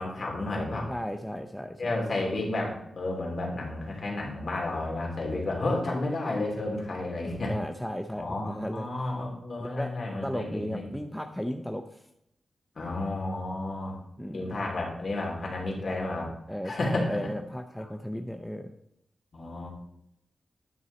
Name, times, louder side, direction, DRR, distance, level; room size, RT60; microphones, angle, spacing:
voice 1, 0.0-0.9 1.8-7.5 8.2-11.0 12.7-14.0 14.3-16.3 16.6-17.1 19.3-19.7, left 2 dB, 45° left, -1 dB, 3.1 m, -31 dB
voice 2, 0.9-2.0 7.5-9.1 9.8-9.9 10.2-12.0 14.2-14.5 16.5-18.7, equal, ahead, 6 dB, 0.6 m, -35 dB
11.0 x 6.1 x 4.1 m, 0.80 s
wide cardioid pair, 120°, 0 cm